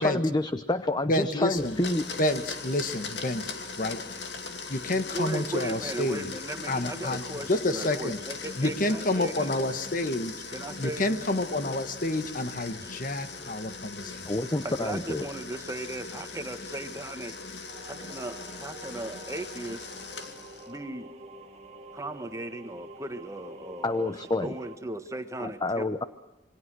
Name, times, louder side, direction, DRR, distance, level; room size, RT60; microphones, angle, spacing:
voice 1, 0.0-2.0 14.3-15.2 23.8-24.5 25.4-26.0, left 2 dB, 25° left, 11 dB, 0.8 m, -28 dB
voice 2, 1.1-1.8 2.2-4.0 4.7-6.3 6.7-8.2 8.6-10.3 10.8-14.3, left 1 dB, 50° left, 9 dB, 1.6 m, -29 dB
Domestic sounds home sounds, 1.5-20.8, left 4 dB, 75° left, 2.4 m, -40 dB
voice 3, 5.1-9.6 10.5-11.2 12.8-12.9 14.6-17.3 17.8-19.9 20.7-21.1 21.9-24.1 24.4-25.9, right 1 dB, 15° right, 8 dB, 1.5 m, -37 dB
sound 1, 17.7-24.8, right 2 dB, 40° right, 1.6 m, -47 dB
27.0 x 22.5 x 6.3 m, 0.87 s
head